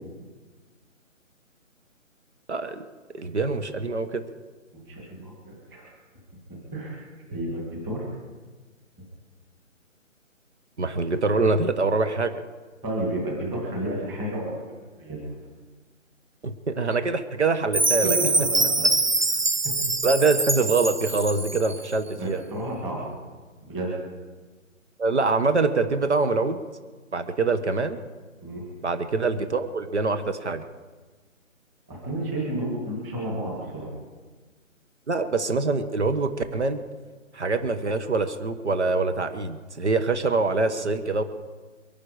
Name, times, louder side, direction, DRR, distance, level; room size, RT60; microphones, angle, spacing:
voice 1, 2.5-2.8 3.1-4.2 10.8-12.4 16.4-18.2 20.0-22.4 25.0-26.6 27.1-28.0 28.8-30.6 35.1-36.8 37.3-41.2, right 3 dB, 55° right, 8 dB, 1.3 m, -24 dB
voice 2, 4.7-5.9 6.7-7.0 7.3-8.1 12.8-14.7 15.0-15.3 17.9-18.1 19.2-19.3 22.2-23.1 23.6-23.9 28.4-28.6 31.9-33.9, right 1 dB, 5° right, -4 dB, 1.9 m, -31 dB
Chime, 17.7-21.8, right 2 dB, 35° right, 0.7 m, -24 dB
23.0 x 11.0 x 5.0 m, 1.3 s
hypercardioid pair, 175°, 40 cm